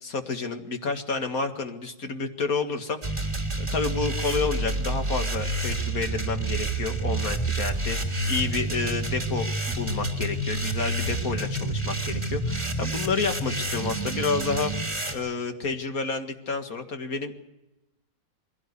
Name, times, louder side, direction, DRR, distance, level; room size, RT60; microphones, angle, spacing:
voice 1, 0.0-3.3 3.6-14.7 15.1-17.4, left 4 dB, 55° left, 5 dB, 2.3 m, -30 dB
sound 1, 3.0-15.1, right 2 dB, 20° right, 3.0 m, -29 dB
22.5 x 17.0 x 8.4 m, 0.97 s
omnidirectional pair, 1.9 m